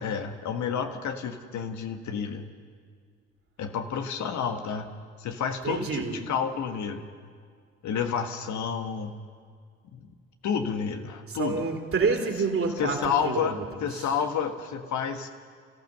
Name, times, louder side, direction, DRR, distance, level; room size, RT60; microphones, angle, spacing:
voice 1, 0.0-2.4 3.6-4.9 5.2-7.1 7.8-9.2 9.9-10.1 10.4-11.6 12.8-15.3, left 7 dB, 55° left, 6 dB, 1.5 m, -30 dB
voice 2, 5.6-6.2 11.3-13.6, right 4 dB, 40° right, 2 dB, 3.7 m, -28 dB
27.5 x 15.0 x 6.8 m, 2.1 s
hypercardioid pair, 50°, 34 cm